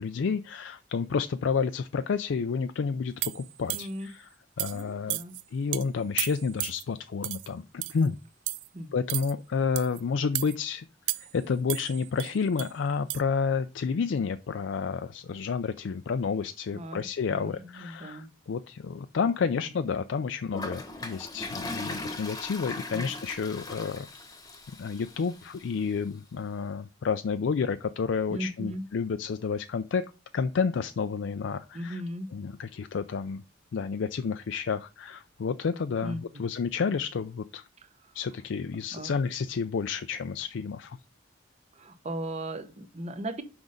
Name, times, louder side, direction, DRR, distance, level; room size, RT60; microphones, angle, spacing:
voice 1, 0.0-4.3 4.6-5.2 5.5-8.2 8.9-10.9 11.2-24.1 24.8-30.1 30.3-32.0 32.3-33.4 33.7-37.6 38.1-41.0, left 5 dB, 75° left, 0.4 m, -30 dB
sound 1, 3.2-4.0 4.6-4.8 5.1-5.4 5.7-5.8 6.2-6.8 7.2-7.5 7.8-8.1 8.5-8.7 9.1-9.3 9.7-10.0 10.3-10.5 11.1-11.4 11.7-12.7 13.1-13.2, right 17 dB, 70° right, 0.4 m, -33 dB
voice 2, 3.7-4.1 4.7-5.4 8.7-9.1 16.7-18.3 19.4-19.8 22.9-23.1 28.3-28.9 31.7-32.3 36.0-36.2 38.0-38.1 38.9-39.2 41.7-43.4, right 1 dB, 35° right, 0.9 m, -38 dB
Toilet flush, 20.5-25.6, left 2 dB, 20° left, 1.0 m, -39 dB
6.1 x 5.2 x 5.1 m
head